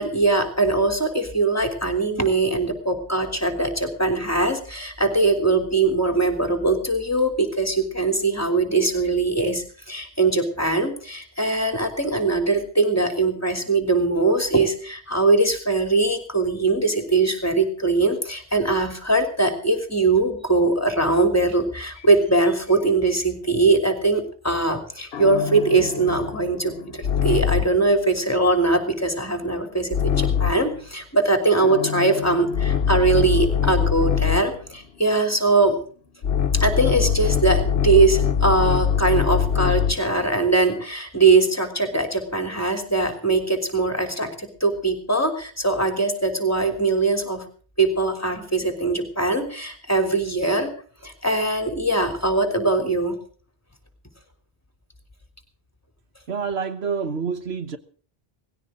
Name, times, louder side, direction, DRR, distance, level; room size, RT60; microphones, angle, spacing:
voice 1, 0.0-35.8 36.5-47.4 47.8-50.7 51.0-53.2, right 3 dB, 15° left, 3.4 m, -21 dB
sound 1, 25.1-27.9 29.9-30.7 31.6-34.6 36.2-40.1, left 8 dB, 75° left, 1.1 m, -23 dB
voice 2, 56.3-57.8, right 5 dB, 85° right, 1.5 m, -27 dB
19.0 x 16.5 x 3.9 m
omnidirectional pair, 1.0 m